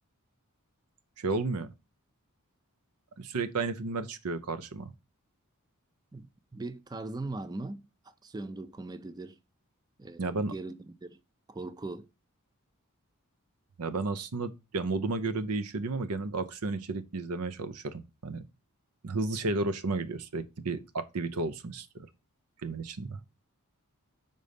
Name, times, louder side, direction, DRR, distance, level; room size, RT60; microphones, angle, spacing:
voice 1, 1.2-1.7 3.2-4.9 10.2-10.5 13.8-18.4 19.0-22.1 22.6-23.2, right 3 dB, 90° right, 0.7 m, -33 dB
voice 2, 6.1-9.4 10.0-11.2 11.5-12.1, right 2 dB, 20° right, 0.4 m, -40 dB
5.2 x 4.0 x 5.1 m
head